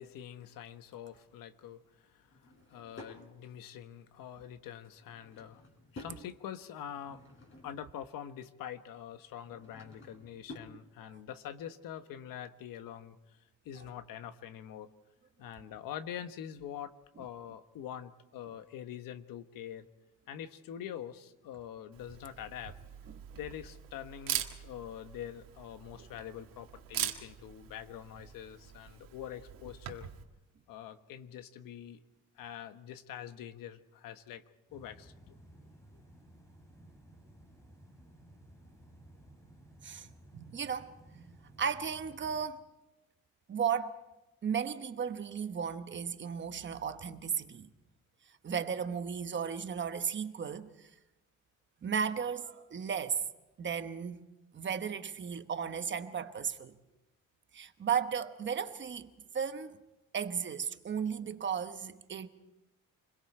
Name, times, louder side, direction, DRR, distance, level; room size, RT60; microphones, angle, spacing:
voice 1, 0.0-5.6 5.9-7.2 7.6-13.4 13.6-14.9 15.4-19.9 20.3-22.8 23.3-30.1 30.7-32.0 32.4-34.4 34.7-35.3, left 10 dB, 85° left, 1.3 m, -45 dB
Drawer open or close / Wood, 2.3-3.2 4.9-6.2 6.8-7.9 9.3-10.8, left 2 dB, 35° left, 4.6 m, -52 dB
Camera, 21.9-30.2, right 11 dB, 85° right, 1.9 m, -42 dB
sound 1, 34.7-42.5, right 1 dB, 10° left, 2.9 m, -57 dB
voice 2, 40.3-40.9 41.1-41.3 41.6-42.6 43.5-44.0 44.4-47.7 48.4-50.9 51.8-53.2 53.6-54.2 54.5-56.8 57.5-59.8 60.1-62.3, right 7 dB, 35° right, 1.1 m, -35 dB
28.5 x 22.0 x 4.5 m
cardioid pair, 145°, 33 cm